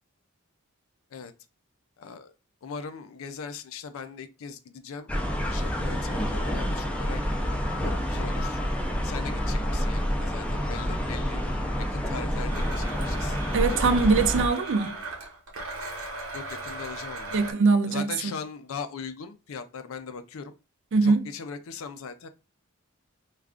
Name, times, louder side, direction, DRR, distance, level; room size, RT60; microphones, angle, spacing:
voice 1, 2.0-2.3 2.6-5.1 5.5-8.6 9.0-11.4 11.8-13.4 13.7-14.0 16.3-17.3 17.9-20.5 21.0-22.3, left 5 dB, 70° left, 0.4 m, -40 dB
sound 1, 5.1-14.5, equal, 5° left, 0.4 m, -28 dB
Domestic sounds home sounds, 12.5-17.5, right 2 dB, 75° right, 1.0 m, -37 dB
voice 2, 13.5-15.0 17.3-18.3 20.9-21.3, right 4 dB, 60° right, 0.4 m, -22 dB
2.4 x 2.3 x 3.4 m
head